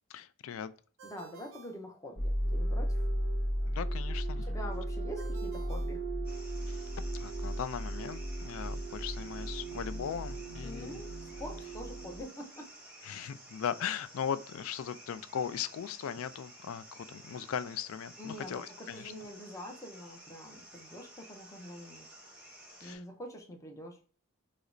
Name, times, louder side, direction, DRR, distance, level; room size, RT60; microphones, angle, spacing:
voice 1, 0.1-0.7 3.7-4.5 6.7-6.8 7.1-11.0 13.0-19.1 22.8-23.0, left 8 dB, 75° left, 0.3 m, -38 dB
voice 2, 1.0-3.1 4.4-6.0 10.6-11.1 11.4-12.7 18.2-22.1 22.8-24.0, equal, 15° left, 0.6 m, -45 dB
Ringtone, 1.0-2.7 5.2-6.8, right 3 dB, 60° right, 0.5 m, -55 dB
sound 1, 2.2-12.2, right 1 dB, 45° left, 1.5 m, -35 dB
sound 2, 6.2-23.0, right 1 dB, 5° right, 0.9 m, -53 dB
4.9 x 2.1 x 2.5 m
head